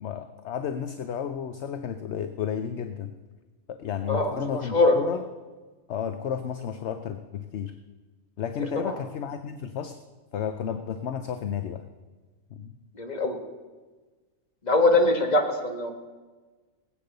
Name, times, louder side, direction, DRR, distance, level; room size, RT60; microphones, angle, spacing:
voice 1, 0.0-3.1 3.7-5.2 5.9-7.7 8.4-10.0 10.3-11.8 12.5-12.8, left 8 dB, 60° left, 8 dB, 0.9 m, -32 dB
voice 2, 4.1-5.0 8.8-8.9 13.0-13.4 14.6-15.9, left 2 dB, 30° left, 3 dB, 1.8 m, -22 dB
19.0 x 8.4 x 6.7 m, 1.3 s
omnidirectional pair, 1.4 m